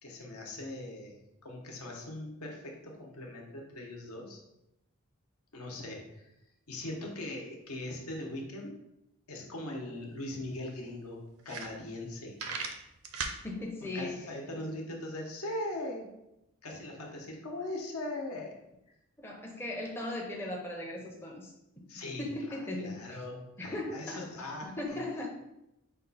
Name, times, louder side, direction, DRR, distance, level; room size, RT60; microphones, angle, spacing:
voice 1, 0.0-4.4 5.5-6.3 6.7-8.8 9.3-12.4 13.8-16.1 16.6-18.5 21.9-25.0, left 1 dB, 80° left, 0 dB, 1.0 m, -40 dB
sound 1, 10.0-10.1 10.4-10.5 11.0-11.1 11.4-12.1 12.4-13.4, right 5 dB, 75° right, 0.5 m, -37 dB
voice 2, 13.3-14.2 19.2-21.9 22.2-23.0 23.6-24.2 24.6-25.3, left 1 dB, 10° left, -1 dB, 0.5 m, -38 dB
5.2 x 2.3 x 4.0 m, 0.87 s
head